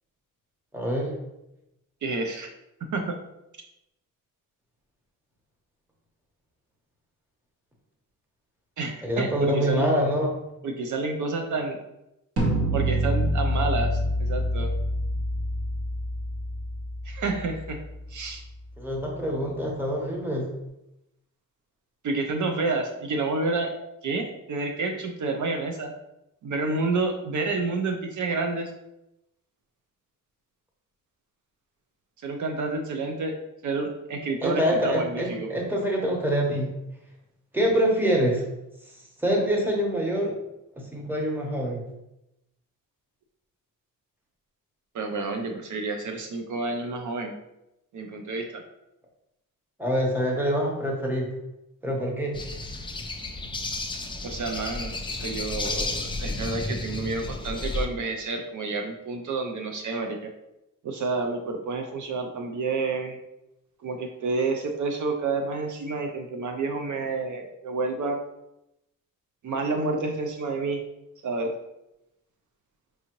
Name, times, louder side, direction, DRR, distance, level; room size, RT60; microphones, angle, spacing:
voice 1, 0.7-1.2 9.0-10.3 18.8-20.5 34.4-36.7 37.5-38.4 39.2-40.4 40.8-41.8 49.8-51.3 51.8-52.3, equal, 5° right, -1 dB, 0.9 m, -25 dB
voice 2, 2.0-2.5 2.9-3.1 8.8-10.0 10.6-11.8 12.7-14.7 17.0-17.8 18.1-18.4 22.0-23.7 24.0-25.9 26.4-28.7 32.2-33.3 33.6-35.5 44.9-47.3 47.9-48.6 54.2-60.2 60.8-63.2 63.8-68.2 69.4-70.8 71.2-71.5, right 3 dB, 65° right, 3 dB, 0.5 m, -29 dB
sound 1, 12.4-18.3, equal, 45° right, 0.9 m, -27 dB
sound 2, 52.3-57.9, left 2 dB, 15° left, 0.3 m, -32 dB
4.7 x 2.7 x 2.9 m, 0.89 s
wide cardioid pair, 125°, 33 cm